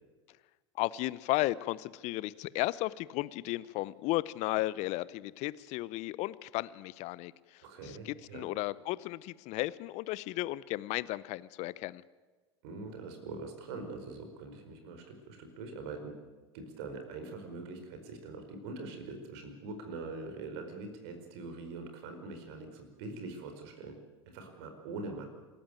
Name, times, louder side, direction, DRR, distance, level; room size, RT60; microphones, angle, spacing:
voice 1, 0.8-12.0, left 18 dB, 50° left, 19 dB, 0.7 m, -34 dB
voice 2, 7.6-8.5 12.6-16.1 16.5-24.0 24.3-25.3, right 3 dB, 60° right, 6 dB, 4.8 m, -43 dB
27.0 x 14.0 x 9.1 m, 1.3 s
hypercardioid pair, 85°, 15 cm